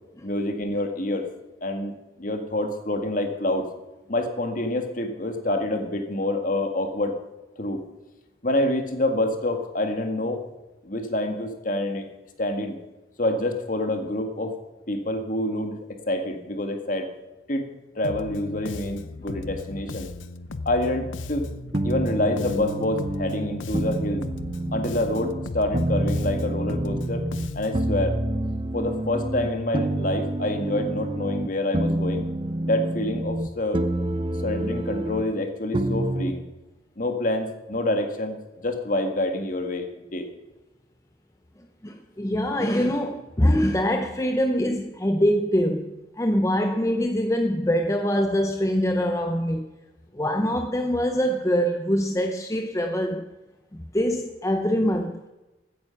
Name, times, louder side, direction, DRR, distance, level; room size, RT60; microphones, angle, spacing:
voice 1, 0.2-1.2 1.6-3.7 4.1-7.2 7.6-7.8 8.4-10.4 10.8-12.1 12.4-12.8 13.2-14.5 14.9-15.8 16.1-17.1 17.5-17.7 18.0-20.1 20.7-21.5 21.8-24.2 24.7-27.3 27.5-28.2 28.7-32.2 32.6-33.8 34.4-36.4 37.0-40.3, left 1 dB, 45° left, 5 dB, 1.8 m, -27 dB
Bass guitar, 18.0-27.9, left 3 dB, 90° left, 0.7 m, -37 dB
sound 1, 21.3-25.5 25.7-27.5 27.7-31.5 31.7-33.5 33.7-35.2 35.7-36.3, right 1 dB, 25° right, 0.7 m, -28 dB
voice 2, 41.8-49.7 50.1-53.2 53.7-55.3, equal, 15° left, 5 dB, 0.7 m, -24 dB
15.5 x 9.3 x 5.8 m, 1.1 s
head